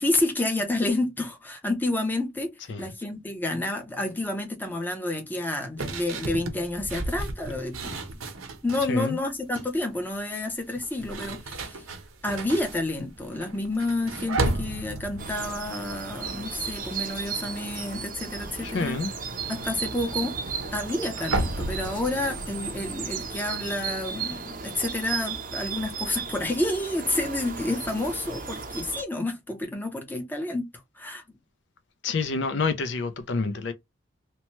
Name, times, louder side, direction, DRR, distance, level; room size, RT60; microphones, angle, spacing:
voice 1, 0.0-2.5 2.8-8.2 8.6-11.8 12.2-19.0 19.5-20.4 20.7-30.7 31.0-31.2, left 2 dB, 10° left, 0.6 m, -29 dB
sound 1, 5.8-9.0 9.3-9.8 10.7-16.9 17.2-17.6 17.9-23.3, right 2 dB, 90° right, 0.8 m, -34 dB
sound 2, 15.2-29.0, right 5 dB, 40° right, 0.5 m, -35 dB
voice 2, 18.6-19.1 32.0-33.7, left 4 dB, 60° left, 0.4 m, -28 dB
2.9 x 2.1 x 2.8 m
head